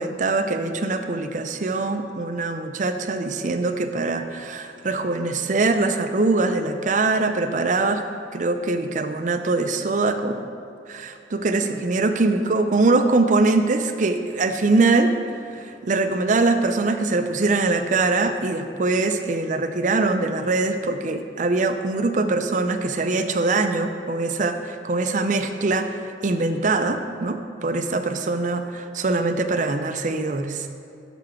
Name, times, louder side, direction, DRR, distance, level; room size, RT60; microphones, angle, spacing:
voice 1, 0.0-8.1 8.3-10.4 10.9-30.7, right 3 dB, 45° right, 7 dB, 0.5 m, -23 dB
6.9 x 5.8 x 6.1 m, 2.6 s
head